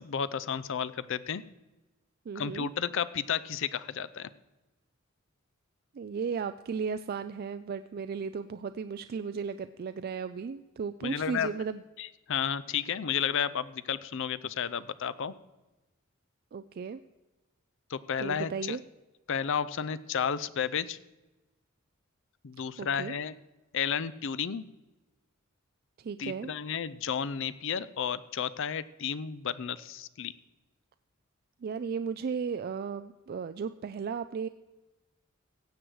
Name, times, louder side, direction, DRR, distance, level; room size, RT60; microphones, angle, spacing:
voice 1, 0.0-1.4 2.3-4.3 11.0-11.5 12.0-15.3 17.9-18.8 19.3-21.0 22.4-23.3 23.7-24.7 26.2-30.3, left 7 dB, 65° left, 15 dB, 0.5 m, -32 dB
voice 2, 2.3-2.7 5.9-11.8 16.5-17.0 18.2-18.8 22.8-23.2 26.0-26.5 31.6-34.5, right 6 dB, 45° right, 11 dB, 0.3 m, -35 dB
16.0 x 7.8 x 4.7 m, 1.1 s
head